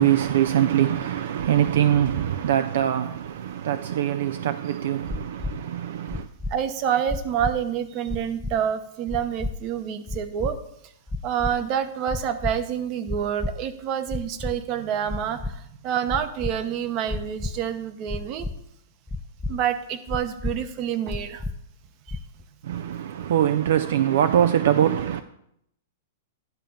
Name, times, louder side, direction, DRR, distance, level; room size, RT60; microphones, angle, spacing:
voice 1, 0.0-6.3 22.6-25.2, right 10 dB, 70° right, 0.4 m, -23 dB
voice 2, 1.4-1.9 6.5-10.6 11.2-18.5 19.5-21.4 22.1-22.2, right 9 dB, 40° right, 0.9 m, -28 dB
sound 1, 5.1-5.5 6.1-6.5 7.1-7.5 8.1-8.5 9.1-9.5 10.1-10.5 11.1-11.5 12.1-12.5 13.1-13.5 14.1-14.5 15.1-15.5 16.1-16.5 17.1-17.5 18.1-18.5 19.1-19.5 20.1-20.5 21.1-21.5 22.1-22.4, left 2 dB, 10° left, 0.5 m, -30 dB
10.5 x 3.8 x 7.1 m
hypercardioid pair, 125°, 0 cm